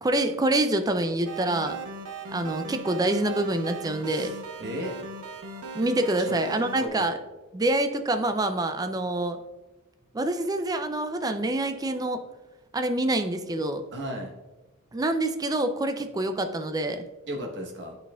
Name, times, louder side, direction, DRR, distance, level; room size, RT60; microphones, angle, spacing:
voice 1, 0.0-1.8 2.3-4.3 5.7-7.2 7.5-9.4 10.1-12.2 12.7-13.8 14.9-17.0, right 1 dB, 15° right, 8 dB, 0.4 m, -26 dB
sound 1, 1.3-6.9, right 3 dB, 80° right, 0.8 m, -38 dB
voice 2, 4.0-5.0 6.2-6.4 6.8-7.2 13.9-14.3 17.3-18.0, equal, 55° right, 1 dB, 1.1 m, -35 dB
11.5 x 4.2 x 2.3 m, 1.2 s
head